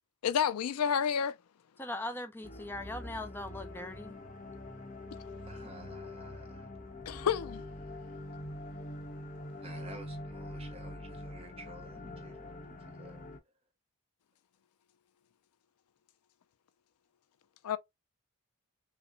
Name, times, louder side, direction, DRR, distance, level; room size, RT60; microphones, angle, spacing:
voice 1, 0.2-1.3 7.1-7.6 17.6-17.8, left 7 dB, 90° left, 0.4 m, -29 dB
voice 2, 1.8-4.1, left 1 dB, 10° left, 0.4 m, -40 dB
sound 1, 2.4-13.4, left 1 dB, 35° left, 0.8 m, -44 dB
voice 3, 5.5-6.7 9.6-12.6 12.9-13.3, right 1 dB, 25° right, 0.8 m, -52 dB
5.6 x 2.1 x 2.6 m
head